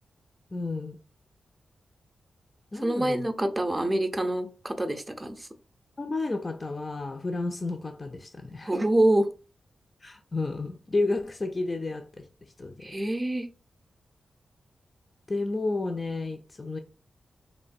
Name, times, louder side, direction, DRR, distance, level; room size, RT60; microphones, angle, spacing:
voice 1, 0.5-1.0 2.7-3.3 6.0-8.7 10.0-12.3 12.6-13.0 15.3-16.8, left 3 dB, 35° left, 0.4 m, -31 dB
voice 2, 2.8-5.5 8.6-9.3 12.8-13.5, right 1 dB, 20° right, 0.5 m, -26 dB
3.0 x 2.1 x 2.5 m
cardioid pair, 80°, 0 cm